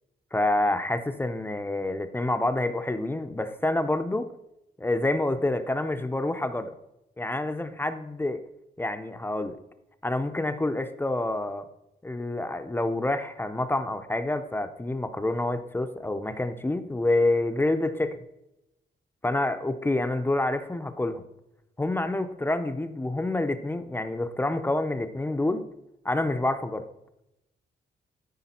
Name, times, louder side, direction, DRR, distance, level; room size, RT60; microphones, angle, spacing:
voice 1, 0.3-4.3 4.8-6.8 7.2-8.4 8.8-9.6 10.0-11.6 12.0-18.2 19.2-21.2 21.8-25.6 26.0-26.8, left 2 dB, 10° left, 8 dB, 0.5 m, -27 dB
13.0 x 5.0 x 4.3 m, 0.88 s
wide cardioid pair, 150°, 18 cm